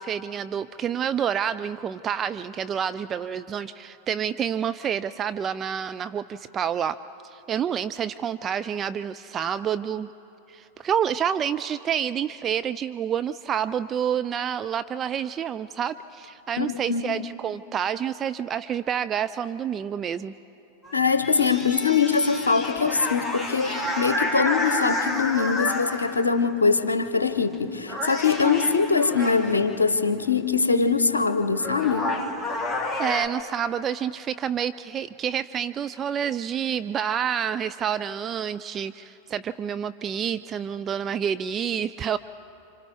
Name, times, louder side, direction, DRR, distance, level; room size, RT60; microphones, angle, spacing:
voice 1, 0.0-7.0 7.2-10.1 10.5-20.3 33.0-42.2, right 8 dB, 25° right, 12 dB, 0.4 m, -28 dB
voice 2, 16.6-17.0 20.9-32.1, left 5 dB, 75° left, 10 dB, 0.9 m, -23 dB
sound 1, 20.8-26.4 27.3-27.6 27.9-29.7 31.1-31.2 31.5-33.3, left 1 dB, 10° left, 1.6 m, -30 dB
29.5 x 26.0 x 3.6 m, 3.0 s
figure-of-eight pair, 90°, 0 cm